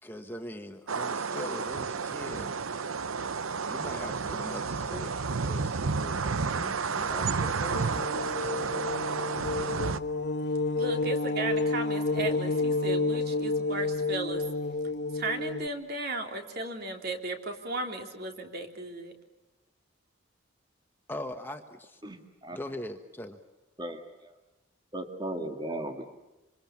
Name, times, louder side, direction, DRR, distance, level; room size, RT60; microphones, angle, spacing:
voice 1, 0.0-2.6 3.6-8.9 21.1-22.0 22.5-23.4, left 1 dB, 10° left, 6 dB, 1.2 m, -42 dB
sound 1, 0.9-10.0, right 5 dB, 90° right, 0.8 m, -31 dB
sound 2, 7.7-15.7, left 3 dB, 55° left, 1.2 m, -30 dB
voice 2, 10.8-14.4 15.1-19.1, right 2 dB, 50° right, 4 dB, 3.3 m, -35 dB
voice 3, 22.0-22.6 23.8-24.4 24.9-26.1, right 1 dB, 20° right, 5 dB, 2.0 m, -37 dB
26.5 x 26.5 x 7.3 m, 1.0 s
head